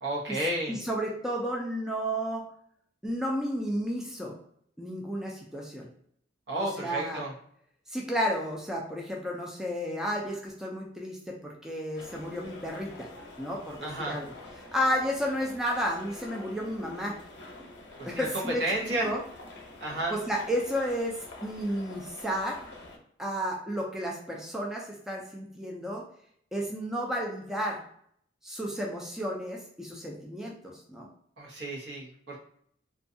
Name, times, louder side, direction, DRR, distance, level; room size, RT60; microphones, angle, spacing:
voice 1, 0.0-0.8 6.5-7.3 13.8-14.2 18.0-19.1 19.8-20.1 31.4-32.4, right 1 dB, 70° right, -3 dB, 0.8 m, -32 dB
voice 2, 0.7-2.5 3.0-4.4 4.8-5.9 6.6-7.2 7.9-13.1 13.4-14.3 14.6-17.2 18.1-19.2 20.1-22.6 23.2-26.0 26.5-27.8 28.4-31.1, equal, 5° right, -1 dB, 0.3 m, -32 dB
sound 1, 12.0-23.0, left 2 dB, 80° left, 0.7 m, -47 dB
2.5 x 2.3 x 2.6 m, 0.67 s
head